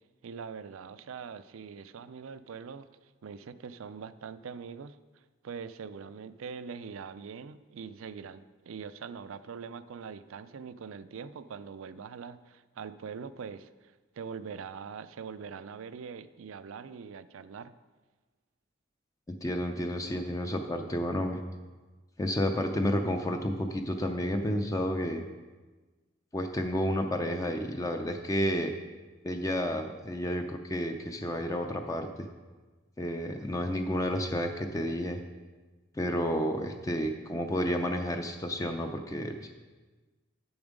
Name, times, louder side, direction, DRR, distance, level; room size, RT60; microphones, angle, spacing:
voice 1, 0.2-2.9 3.2-5.0 5.4-17.7, right 6 dB, 80° right, 14 dB, 0.4 m, -43 dB
voice 2, 19.3-21.4 22.2-25.3 26.3-28.7 29.2-32.3 33.0-35.2 35.9-39.5, equal, 15° left, 5 dB, 0.4 m, -31 dB
8.8 x 7.0 x 5.1 m, 1.3 s
head